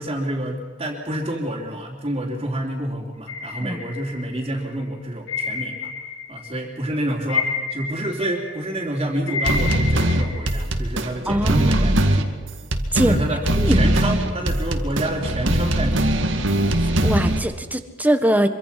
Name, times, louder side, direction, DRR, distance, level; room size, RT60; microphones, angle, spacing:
voice 1, 0.0-5.9 6.3-12.3 12.9-16.2, right 1 dB, 30° right, -5 dB, 3.5 m, -28 dB
sound 1, 3.3-4.6 5.3-6.6 6.9-10.6, left 5 dB, 70° left, 4.3 m, -29 dB
sound 2, 9.4-17.4, right 1 dB, 75° right, 2.2 m, -21 dB
voice 2, 11.3-12.0 12.9-13.2 13.5-14.2 16.8-18.5, right 1 dB, 10° right, 8 dB, 1.5 m, -22 dB
25.5 x 24.5 x 5.9 m, 1.3 s
head